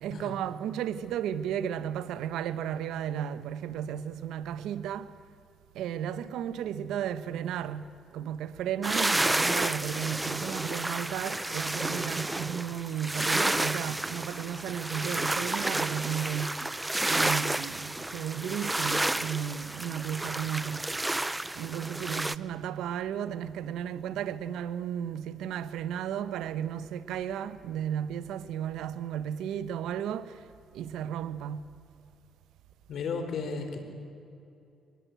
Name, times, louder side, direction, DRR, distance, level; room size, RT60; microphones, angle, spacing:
voice 1, 0.0-5.1 5.7-7.9 8.1-16.6 17.0-20.8 21.6-30.4 30.7-31.6, right 9 dB, 85° right, 1.0 m, -34 dB
sound 1, 8.8-22.4, right 1 dB, 10° right, 0.6 m, -31 dB
voice 2, 32.9-33.8, left 5 dB, 65° left, 4.0 m, -34 dB
24.0 x 19.5 x 9.2 m
cardioid pair, 90°, 0 cm